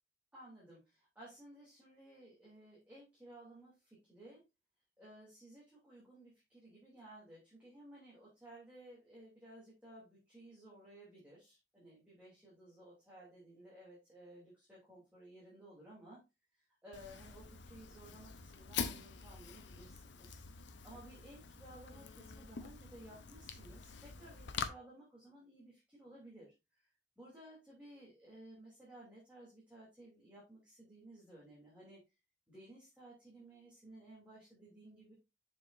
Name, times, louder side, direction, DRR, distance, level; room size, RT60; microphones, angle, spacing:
voice 1, 0.3-4.4 5.0-16.2 16.8-20.4 20.8-26.9 27.2-32.0 32.5-35.1, right 1 dB, 10° right, -7 dB, 2.9 m, -57 dB
Fire, 16.9-24.7, left 6 dB, 75° left, 0.9 m, -45 dB
7.5 x 6.0 x 2.6 m, 0.25 s
head